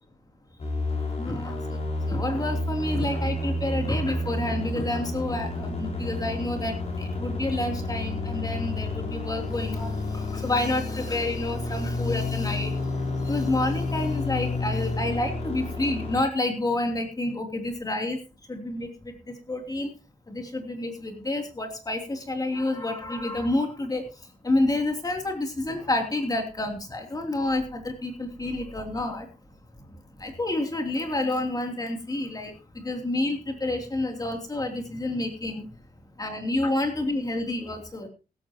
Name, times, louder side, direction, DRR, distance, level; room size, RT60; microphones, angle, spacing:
sound 1, 0.6-16.2, left 2 dB, 40° left, 5.3 m, -30 dB
voice 1, 1.2-12.7 13.3-18.2 18.5-18.9 19.5-19.9 20.3-24.1 24.4-29.3 30.2-35.7 36.2-38.1, left 2 dB, 25° left, 3 dB, 3.1 m, -29 dB
16.5 x 13.5 x 2.9 m, 0.32 s
wide cardioid pair, 145°, 16 cm